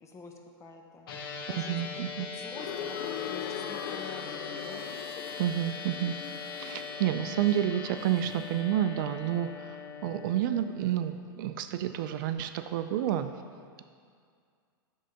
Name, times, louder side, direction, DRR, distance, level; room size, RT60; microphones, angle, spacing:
voice 1, 0.0-4.8, left 4 dB, 25° left, 2 dB, 0.9 m, -47 dB
sound 1, 1.1-10.4, left 4 dB, 70° left, 0.9 m, -40 dB
voice 2, 1.6-2.3 5.4-6.1 6.6-13.3, right 11 dB, 60° right, 9 dB, 0.4 m, -30 dB
sound 2, 2.5-8.4, left 10 dB, 55° left, 0.4 m, -41 dB
7.5 x 3.7 x 5.6 m, 2.2 s
hypercardioid pair, 115°, 12 cm